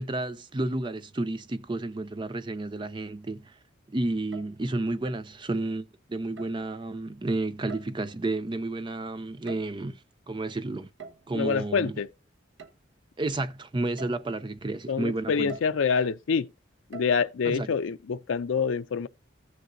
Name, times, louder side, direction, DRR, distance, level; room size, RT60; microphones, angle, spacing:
voice 1, 0.0-3.6 3.9-10.0 10.3-10.9 11.3-11.9 13.2-15.5 17.5-17.8, right 2 dB, 25° right, 0.5 m, -31 dB
sound 1, 4.3-4.6 5.0-5.3 6.4-6.7 7.7-8.2 9.2-10.0 11.0-11.4 12.6-12.8 13.3-13.4 14.0-14.3 15.5-15.9 16.9-17.1, right 5 dB, 70° right, 1.1 m, -45 dB
voice 2, 11.3-12.1 14.9-16.5 16.9-19.1, left 5 dB, 80° left, 0.4 m, -26 dB
15.5 x 6.6 x 2.6 m
head